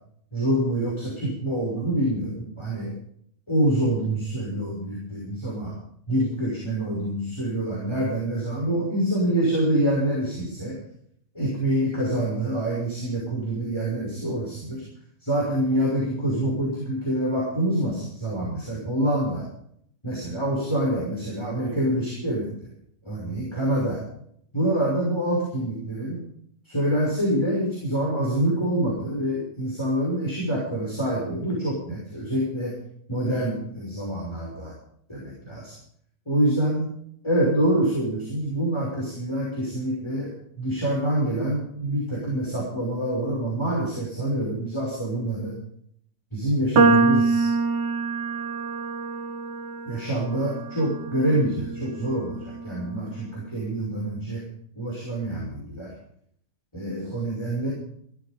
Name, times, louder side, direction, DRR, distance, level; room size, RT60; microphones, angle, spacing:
voice 1, 0.3-3.0 3.5-5.7 6.1-10.8 11.3-14.9 15.2-19.5 20.0-22.5 23.0-24.0 24.5-26.2 26.6-32.8 33.1-34.7 35.1-35.7 36.3-36.9 37.2-45.6 46.3-47.5 49.9-54.5 54.8-55.9 56.7-57.7, right 1 dB, 15° left, -4 dB, 5.9 m, -26 dB
sound 1, 46.8-53.1, right 4 dB, 80° right, 1.9 m, -25 dB
17.0 x 14.0 x 5.2 m, 0.67 s
omnidirectional pair, 1.8 m